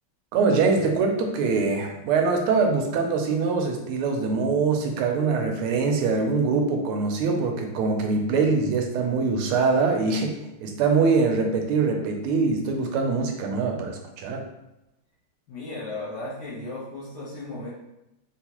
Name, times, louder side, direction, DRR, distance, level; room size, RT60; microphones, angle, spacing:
voice 1, 0.3-14.4, right 4 dB, 85° right, 3 dB, 1.5 m, -23 dB
voice 2, 15.5-17.7, left 2 dB, 60° left, -8 dB, 1.2 m, -35 dB
3.9 x 2.3 x 2.9 m, 0.92 s
omnidirectional pair, 2.4 m